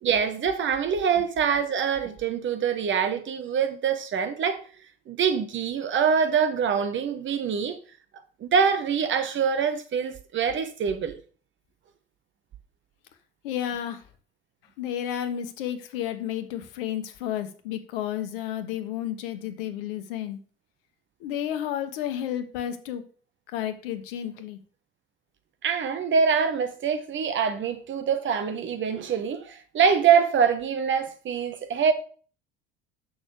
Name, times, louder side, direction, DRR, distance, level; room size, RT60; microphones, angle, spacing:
voice 1, 0.0-4.6 5.1-7.8 8.4-11.2 25.6-31.9, right 6 dB, 40° right, 1.4 m, -24 dB
voice 2, 13.4-14.0 14.8-20.4 21.2-23.0 23.5-24.6, left 10 dB, 70° left, 1.2 m, -31 dB
6.4 x 6.2 x 6.7 m
figure-of-eight pair, 65°, 30 cm